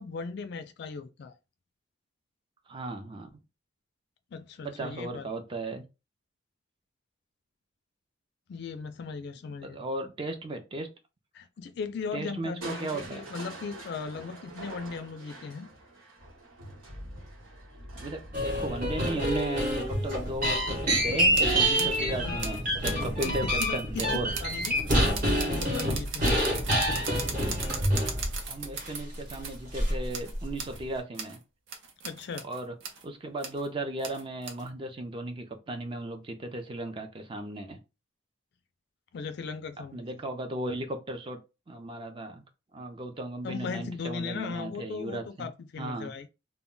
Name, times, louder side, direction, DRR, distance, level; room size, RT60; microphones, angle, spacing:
voice 1, 0.0-1.3 4.3-5.3 8.5-9.8 11.3-15.7 21.8-22.5 23.2-24.0 24.4-26.3 32.0-32.5 39.1-40.1 43.4-46.3, left 5 dB, 55° left, 0.3 m, -38 dB
voice 2, 2.7-3.3 4.6-5.9 9.6-10.9 12.1-13.2 18.0-24.3 26.2-26.4 28.0-31.4 32.4-32.7 33.0-37.8 39.9-41.4 41.7-42.4 42.7-45.5 45.8-46.1, right 1 dB, 25° right, 0.4 m, -36 dB
Crushing, 12.6-20.6 22.1-22.6 23.1-23.2, right 2 dB, 85° right, 1.1 m, -46 dB
sound 1, 18.3-28.4 28.8-28.9 29.7-30.1 30.3-30.8, equal, 40° right, 0.9 m, -27 dB
sound 2, 21.3-22.0 22.4-29.6 30.1-30.8 31.1-31.4 31.7-33.0 33.4-33.7 34.0-34.7, right 5 dB, 65° right, 0.6 m, -38 dB
2.1 x 2.1 x 3.7 m
head